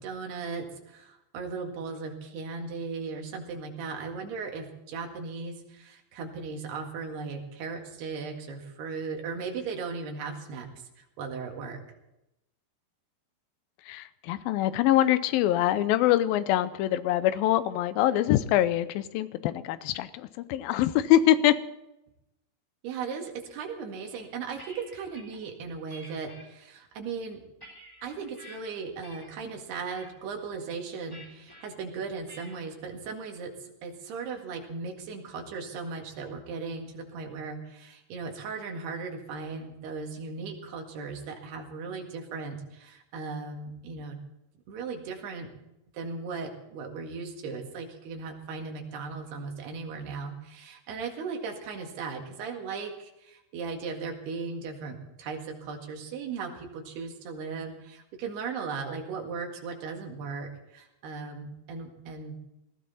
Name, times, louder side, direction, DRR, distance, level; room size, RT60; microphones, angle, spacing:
voice 1, 0.0-10.7 11.0-11.8 22.8-27.4 28.0-44.2 44.7-45.5 45.9-62.4, right 5 dB, 80° right, 2 dB, 4.0 m, -37 dB
voice 2, 13.9-21.6, left 13 dB, 80° left, 14 dB, 2.3 m, -24 dB
sound 1, 24.2-25.4 25.9-26.4 27.0-28.6 29.0-29.4 29.7-30.1 31.1-31.6 32.3-32.7, equal, 5° left, 3.5 m, -50 dB
19.0 x 14.5 x 4.2 m, 0.89 s
omnidirectional pair, 4.6 m